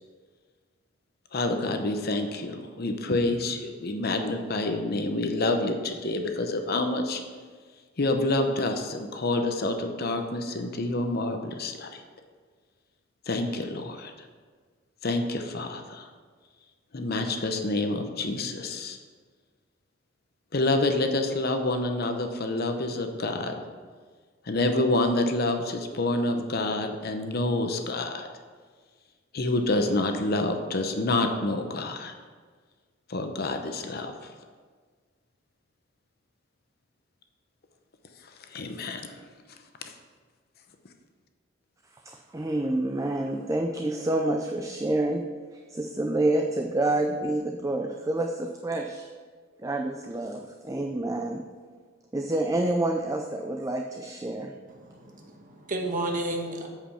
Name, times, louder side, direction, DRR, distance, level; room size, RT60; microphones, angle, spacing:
voice 1, 1.3-7.2 8.0-12.0 13.3-14.1 15.0-16.1 16.9-19.0 20.5-23.5 24.5-28.3 29.3-32.1 33.1-34.3 38.5-39.2, left 2 dB, 55° left, 5 dB, 0.8 m, -28 dB
voice 2, 42.0-45.2 45.7-49.1 49.6-51.4 52.1-54.5, right 2 dB, 15° right, 3 dB, 0.4 m, -28 dB
voice 3, 54.7-56.7, right 1 dB, 45° right, 2 dB, 1.2 m, -32 dB
8.5 x 5.1 x 5.7 m, 1.5 s
head